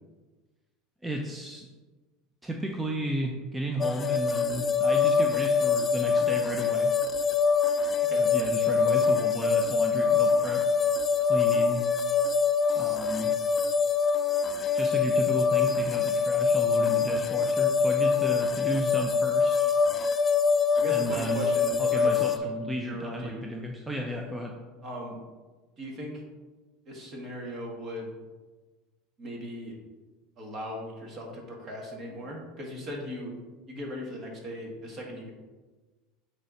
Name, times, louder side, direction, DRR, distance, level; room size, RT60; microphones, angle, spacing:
voice 1, 1.0-1.7 2.4-6.9 8.2-10.6 11.2-11.8 12.7-13.3 14.7-19.7 20.9-21.5 21.8-24.5, equal, 10° right, 1 dB, 0.6 m, -33 dB
sound 1, 3.8-22.4, left 5 dB, 30° left, 0.4 m, -24 dB
voice 2, 20.7-22.5 22.8-23.4 24.8-25.2 25.8-26.2 26.9-28.1 29.2-29.8 30.4-33.3 33.7-35.3, equal, 40° right, -1 dB, 2.0 m, -38 dB
8.4 x 3.4 x 4.2 m, 1.3 s
supercardioid pair, 105°, 0 cm